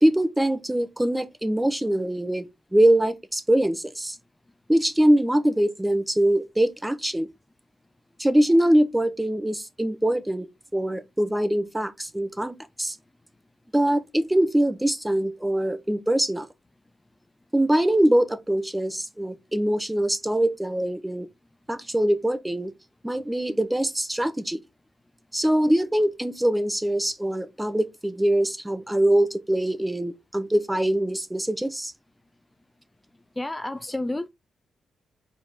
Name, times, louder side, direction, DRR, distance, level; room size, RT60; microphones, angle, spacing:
voice 1, 0.0-2.5 2.7-4.2 4.7-7.3 8.2-10.5 10.7-13.0 13.7-16.5 17.5-21.3 21.7-22.7 23.0-24.6 25.3-31.9, right 1 dB, 10° right, 1.3 m, -23 dB
voice 2, 33.4-34.3, left 1 dB, 20° left, 0.6 m, -30 dB
5.5 x 4.4 x 4.5 m
hypercardioid pair, 45°, 0 cm